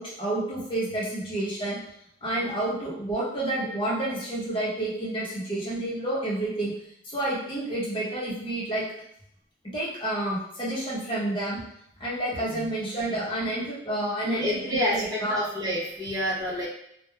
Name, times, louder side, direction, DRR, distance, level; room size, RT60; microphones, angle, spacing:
voice 1, 0.0-1.8 2.2-6.7 7.0-8.8 9.7-11.6 12.0-15.4, right 1 dB, 25° left, -6 dB, 0.8 m, -29 dB
voice 2, 14.2-16.6, equal, 20° right, -9 dB, 0.8 m, -28 dB
3.0 x 2.1 x 2.3 m, 0.74 s
head